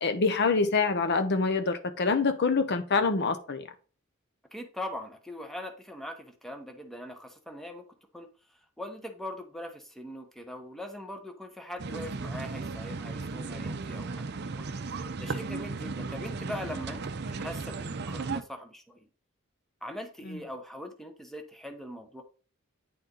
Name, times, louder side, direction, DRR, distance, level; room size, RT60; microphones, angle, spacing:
voice 1, 0.0-3.7 20.3-20.4, left 4 dB, 55° left, 0.8 m, -26 dB
voice 2, 4.5-7.8 8.1-8.3 8.8-14.7 15.2-17.0 17.3-19.1 19.8-22.2, left 1 dB, ahead, 1.0 m, -41 dB
sound 1, 11.8-18.4, right 4 dB, 55° right, 0.6 m, -35 dB
9.4 x 4.2 x 3.9 m
head